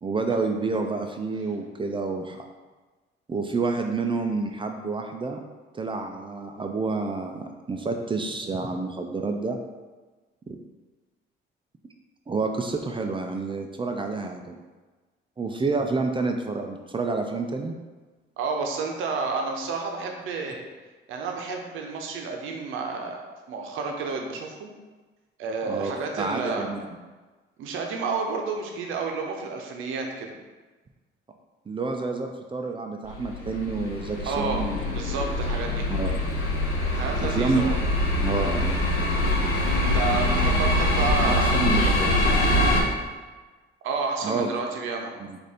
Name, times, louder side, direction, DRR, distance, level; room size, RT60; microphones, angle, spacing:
voice 1, 0.0-2.4 3.3-5.4 5.7-9.6 10.5-10.6 12.3-14.5 15.4-17.7 25.7-25.9 26.2-26.8 31.7-34.8 35.9-36.2 37.2-37.6 38.2-38.7 41.2-42.1 42.8-42.9 44.2-44.5 45.3-45.4, right 3 dB, 25° right, 4 dB, 0.5 m, -29 dB
voice 2, 18.4-20.7 21.1-23.2 23.5-24.7 25.4-26.7 27.6-30.3 34.3-34.6 34.9-35.9 36.9-37.8 39.8-41.8 43.8-45.1, right 4 dB, 85° right, 2 dB, 0.7 m, -30 dB
sound 1, 33.1-42.8, left 1 dB, 90° left, 0.9 m, -24 dB
4.8 x 2.6 x 4.2 m, 1.3 s
cardioid pair, 90°, 20 cm